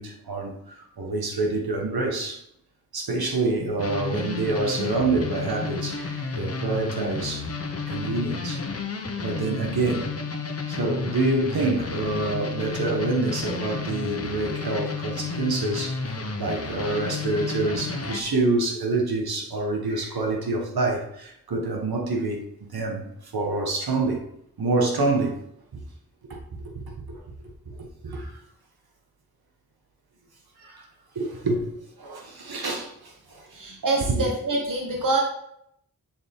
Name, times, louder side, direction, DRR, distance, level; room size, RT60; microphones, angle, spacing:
voice 1, 0.0-2.4 2.9-7.5 7.9-8.6 9.2-10.1 10.7-24.2 24.6-25.4 25.7-25.8 26.3-28.3 30.6-30.9 31.1-31.7 32.0-33.8 34.1-34.2, right 3 dB, 90° right, 1.7 m, -27 dB
sound 1, 3.8-18.2, left 4 dB, 40° left, 0.9 m, -31 dB
voice 2, 33.5-35.2, right 2 dB, 60° right, 1.4 m, -25 dB
7.3 x 6.9 x 3.8 m
wide cardioid pair, 90°, 36 cm